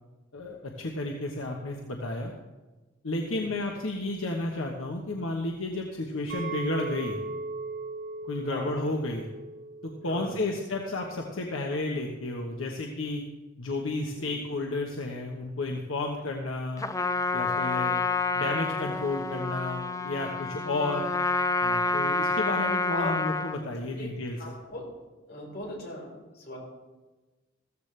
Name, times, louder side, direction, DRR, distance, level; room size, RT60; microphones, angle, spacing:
voice 1, 0.3-2.3 3.0-7.2 8.3-9.3 9.8-13.2 13.6-16.8 17.3-18.0 18.3-21.1 21.6-24.5, left 2 dB, 85° left, 1 dB, 1.2 m, -32 dB
Chink clink, 6.3-11.5, right 3 dB, 70° right, 3.5 m, -38 dB
voice 2, 10.0-10.4 14.2-14.3 16.2-16.3 22.9-23.1 23.9-24.1 24.4-24.8 25.3-26.6, left 1 dB, 55° left, -2 dB, 4.6 m, -38 dB
Trumpet, 16.8-23.6, left 3 dB, 15° left, 0.5 m, -28 dB
15.0 x 14.0 x 3.3 m, 1.2 s
head